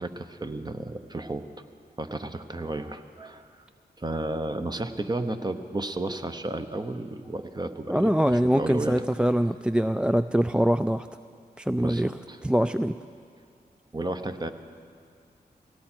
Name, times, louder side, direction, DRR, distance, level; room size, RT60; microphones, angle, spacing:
voice 1, 0.0-1.4 2.0-3.5 4.0-8.9 11.8-12.4 13.9-14.5, right 2 dB, 25° right, 8 dB, 1.0 m, -33 dB
voice 2, 7.9-11.1 11.6-12.1 12.4-13.0, equal, 5° right, 10 dB, 0.3 m, -23 dB
18.0 x 17.0 x 4.5 m, 2.3 s
cardioid pair, 50°, 17 cm